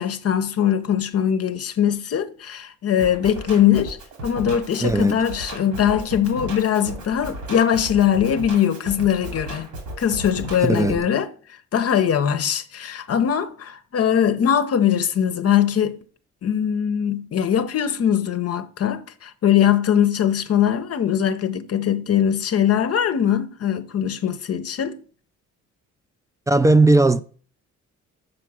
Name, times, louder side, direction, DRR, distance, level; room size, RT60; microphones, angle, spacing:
voice 1, 0.0-4.0 4.2-9.7 10.0-11.3 11.7-16.0 16.4-25.0, left 9 dB, 50° left, 0.7 m, -21 dB
Drum kit, 3.0-11.0, right 1 dB, 90° right, 2.4 m, -35 dB
voice 2, 4.8-5.3 10.6-11.1 26.5-27.2, right 2 dB, 10° right, 0.4 m, -17 dB
6.7 x 4.6 x 6.1 m
cardioid pair, 90°, 30 cm